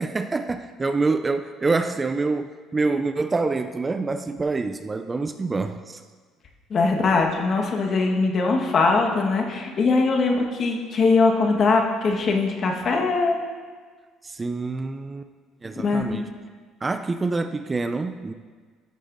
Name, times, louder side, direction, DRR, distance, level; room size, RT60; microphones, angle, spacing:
voice 1, 0.0-6.0 14.2-15.3 15.6-16.3 16.8-18.3, right 3 dB, 20° right, 9 dB, 0.3 m, -26 dB
voice 2, 6.7-13.4 15.8-16.2, left 3 dB, 45° left, 1 dB, 1.3 m, -21 dB
14.5 x 6.5 x 2.6 m, 1.5 s
supercardioid pair, 95°, 0 cm